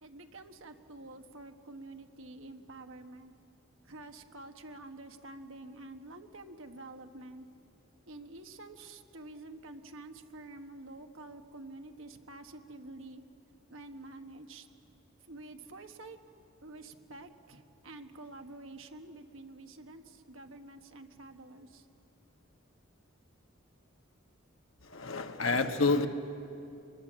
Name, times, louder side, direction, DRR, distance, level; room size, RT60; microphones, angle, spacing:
voice 1, 0.0-3.3 3.8-7.4 8.1-13.2 13.7-14.7 15.3-16.2 16.6-21.8, right 2 dB, 70° right, 6 dB, 1.4 m, -48 dB
voice 2, 24.8-26.1, left 3 dB, 75° left, 7 dB, 1.2 m, -28 dB
25.5 x 21.5 x 7.5 m, 2.7 s
head